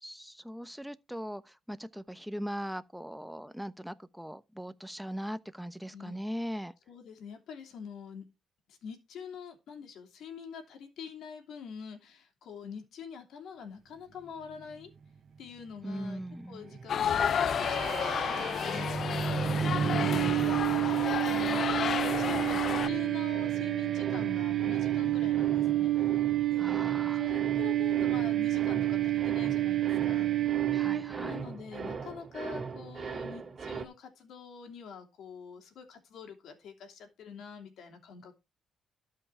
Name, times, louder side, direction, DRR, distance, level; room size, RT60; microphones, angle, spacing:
voice 1, 0.0-6.7 15.8-16.6 20.0-20.5 26.6-27.3 30.7-31.4, equal, ahead, 0.9 m, -40 dB
voice 2, 5.9-6.2 6.9-8.3 8.7-14.9 15.4-16.2 16.5-25.9 26.5-26.7 27.1-30.3 31.2-38.4, left 6 dB, 75° left, 3.0 m, -46 dB
sound 1, 15.9-18.3 18.6-33.9, right 5 dB, 35° right, 2.6 m, -42 dB
sound 2, 16.9-22.9, left 8 dB, 60° left, 0.5 m, -31 dB
sound 3, 17.4-31.4, right 13 dB, 60° right, 0.8 m, -29 dB
12.5 x 5.7 x 4.8 m
cardioid pair, 90°, 0 cm